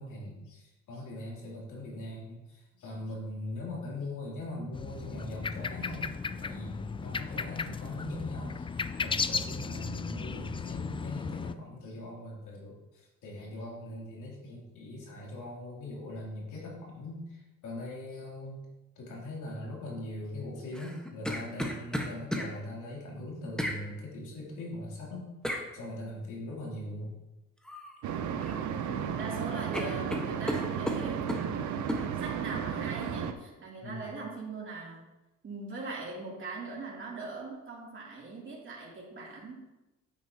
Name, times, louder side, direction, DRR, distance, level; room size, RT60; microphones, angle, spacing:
voice 1, 0.0-8.7 9.0-18.6 18.9-25.3 25.7-27.1 33.8-34.0, left 1 dB, 80° left, -4 dB, 3.1 m, -41 dB
sound 1, 4.7-11.5, left 5 dB, 20° left, 0.3 m, -35 dB
voice 2, 9.7-10.2 28.8-31.3 32.2-35.0 35.4-39.5, right 3 dB, 40° right, -5 dB, 2.9 m, -41 dB
sound 2, 20.7-22.5 23.6-23.8 25.4-25.7 27.6-27.9 28.3-29.0 29.3-29.4 29.7-31.5 31.9-32.1, equal, 5° left, 1.2 m, -34 dB
sound 3, 28.0-33.3, right 8 dB, 75° right, 0.7 m, -34 dB
9.0 x 8.5 x 2.9 m, 1.0 s
cardioid pair, 90°, 30 cm